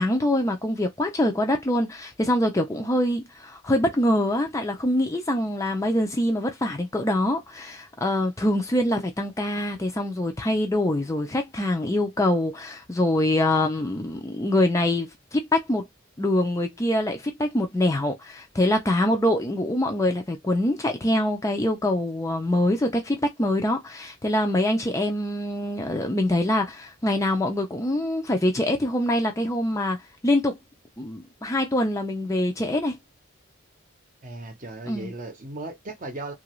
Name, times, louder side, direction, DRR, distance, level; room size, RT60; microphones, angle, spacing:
voice 1, 0.0-15.9 16.2-30.0 30.2-30.6 31.0-33.0 34.9-35.1, left 1 dB, 15° left, 0.4 m, -24 dB
voice 2, 34.2-36.3, right 2 dB, 40° right, 0.7 m, -36 dB
2.7 x 2.5 x 3.0 m
head